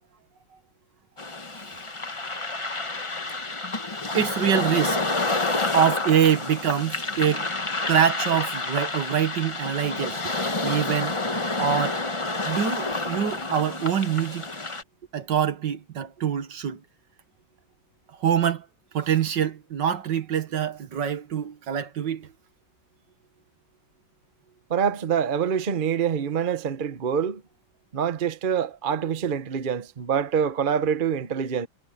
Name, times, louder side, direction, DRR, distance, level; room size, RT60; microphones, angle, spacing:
sound 1, 1.2-14.8, left 2 dB, 20° left, 1.0 m, -29 dB
voice 1, 4.1-5.0 5.7-7.5 7.9-10.2 10.6-11.2 11.6-12.0 12.4-14.5 15.1-16.8 18.2-18.7 18.9-22.3, right 8 dB, 65° right, 2.0 m, -24 dB
voice 2, 24.7-27.4 27.9-31.7, right 7 dB, 40° right, 0.8 m, -25 dB
omnidirectional pair, 2.1 m